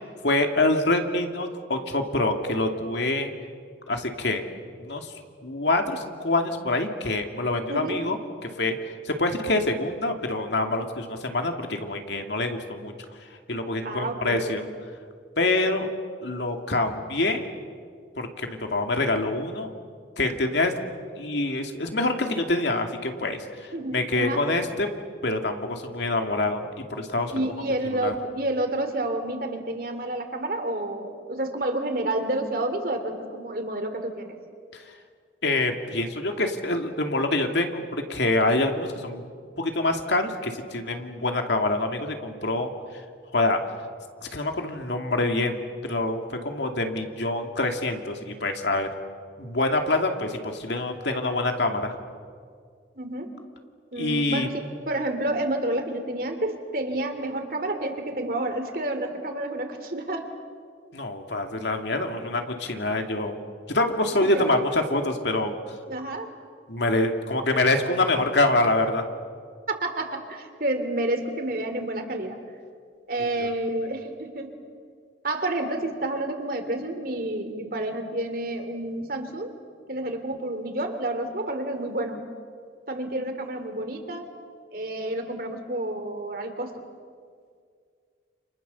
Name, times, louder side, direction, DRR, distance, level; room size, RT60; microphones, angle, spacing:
voice 1, 0.2-3.3 3.9-4.4 4.8-5.1 5.4-8.2 8.6-12.9 13.5-14.6 15.4-15.9 16.2-17.5 18.2-19.7 20.2-20.7 21.2-24.9 25.2-27.5 28.0-28.1 34.7-34.8 35.4-39.3 39.6-43.0 43.3-43.6 44.3-48.9 49.4-52.0 53.9-54.5 60.9-63.4 63.7-65.7 66.7-69.0, left 2 dB, 75° left, 4 dB, 2.5 m, -26 dB
voice 2, 7.7-8.0 13.8-14.6 23.7-24.4 27.3-34.4 53.0-53.3 53.9-60.3 64.2-64.5 65.9-66.3 69.7-72.4 73.1-74.5 75.2-79.6 79.9-82.2 82.9-84.3 84.7-86.7, right 1 dB, 50° right, 6 dB, 3.0 m, -29 dB
29.5 x 28.5 x 7.0 m, 2.1 s
head